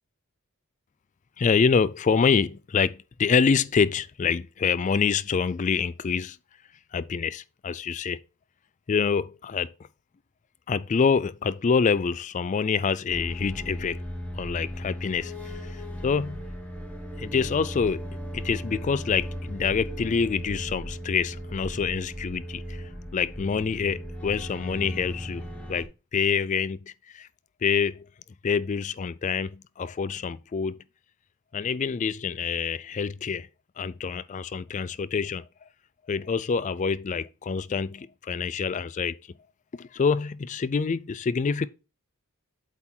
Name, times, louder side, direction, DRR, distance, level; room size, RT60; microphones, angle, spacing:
voice 1, 1.4-6.4 6.9-8.2 8.9-9.7 10.7-14.0 14.3-15.3 16.0-16.4 17.2-18.1 18.3-22.8 23.1-25.4 25.7-26.8 27.1-27.3 27.6-28.0 28.4-30.8 31.5-33.5 33.8-35.5 36.1-39.2 39.8-41.7, left 5 dB, 35° left, 0.3 m, -26 dB
sound 1, 13.1-25.9, equal, 5° left, 1.2 m, -37 dB
8.2 x 3.7 x 4.4 m
head